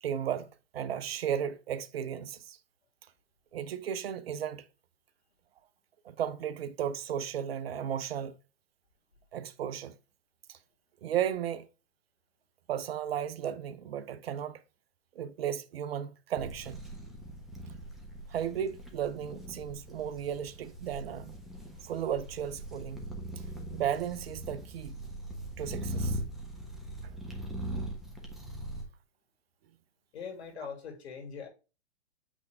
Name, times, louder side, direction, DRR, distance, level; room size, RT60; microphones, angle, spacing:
voice 1, 0.0-2.6 3.5-4.6 6.0-8.4 9.3-9.9 10.5-10.6 11.0-11.7 12.7-14.6 15.2-16.8 18.3-21.3 21.8-23.0 23.7-25.0 25.6-26.2, right 9 dB, 60° right, 0.9 m, -34 dB
sound 1, 16.3-28.8, right 1 dB, ahead, 1.2 m, -40 dB
voice 2, 30.1-31.5, left 6 dB, 65° left, 2.8 m, -41 dB
8.5 x 3.6 x 3.4 m
hypercardioid pair, 135°, 35 cm